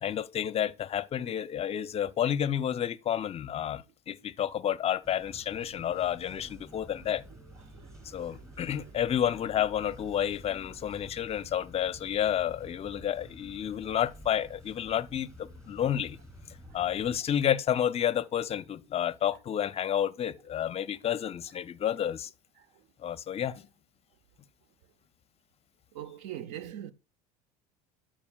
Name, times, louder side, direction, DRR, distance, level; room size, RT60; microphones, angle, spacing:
voice 1, 0.0-7.2 8.0-16.2 16.7-22.3 23.0-23.6, left 10 dB, 30° left, 0.6 m, -30 dB
sound 1, 5.0-17.2, equal, 15° right, 2.7 m, -50 dB
voice 2, 7.6-8.9 13.8-13.9 16.6-16.8 22.6-23.4 25.9-26.9, right 11 dB, 65° right, 0.6 m, -45 dB
12.0 x 5.1 x 2.3 m
hypercardioid pair, 85°, 20 cm